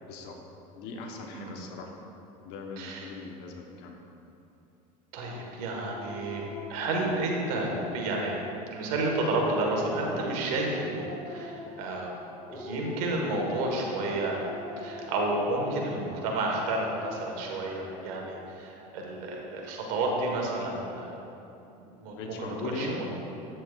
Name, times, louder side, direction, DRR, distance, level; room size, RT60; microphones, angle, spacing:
voice 1, 0.8-1.9 2.4-4.0 22.1-23.0, left 3 dB, 65° left, 1 dB, 1.1 m, -39 dB
voice 2, 2.8-3.1 5.1-6.4 6.7-8.4 8.7-12.2 12.5-14.4 14.8-21.2 22.0-23.0, right 2 dB, 75° right, -1 dB, 1.5 m, -31 dB
Dog, 5.7-8.5 8.9-12.0 12.5-16.0, left 1 dB, 15° left, 1.0 m, -41 dB
9.0 x 7.5 x 2.4 m, 2.8 s
supercardioid pair, 100°, 19 cm